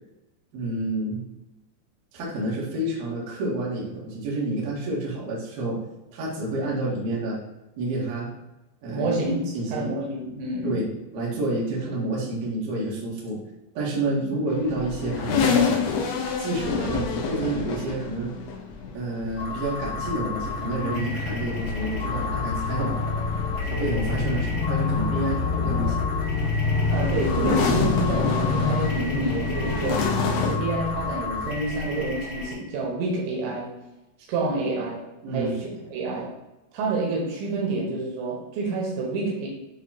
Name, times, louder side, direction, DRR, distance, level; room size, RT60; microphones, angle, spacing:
voice 1, 0.5-1.2 2.1-5.8 6.1-7.4 7.8-8.3 8.8-9.1 9.5-9.9 10.6-13.4 13.7-15.8 16.4-18.3 18.9-22.9 23.6-26.0 35.2-35.6, right 2 dB, 65° right, -5 dB, 3.5 m, -29 dB
voice 2, 8.9-9.4 9.7-10.8 26.9-33.7 34.3-35.1 35.3-36.4 36.7-39.5, right 2 dB, 85° right, -3 dB, 3.6 m, -28 dB
sound 1, 14.5-30.6, left 5 dB, 75° left, 2.6 m, -29 dB
sound 2, 19.4-32.5, left 4 dB, 50° left, 1.6 m, -34 dB
sound 3, 19.6-32.4, left 4 dB, 90° left, 2.1 m, -28 dB
9.6 x 3.5 x 2.9 m, 0.99 s
omnidirectional pair, 5.1 m